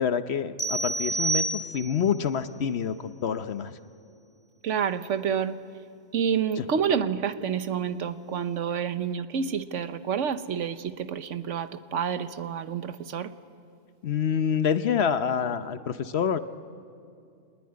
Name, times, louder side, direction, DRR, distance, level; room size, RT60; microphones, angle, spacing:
voice 1, 0.0-3.8 6.6-6.7 14.0-16.4, left 7 dB, 60° left, 11 dB, 1.0 m, -27 dB
sound 1, 0.6-2.1, right 3 dB, 5° left, 1.6 m, -29 dB
voice 2, 4.6-5.6 6.1-13.3, right 7 dB, 75° right, 11 dB, 1.2 m, -28 dB
26.0 x 19.5 x 9.6 m, 2.4 s
omnidirectional pair, 1.3 m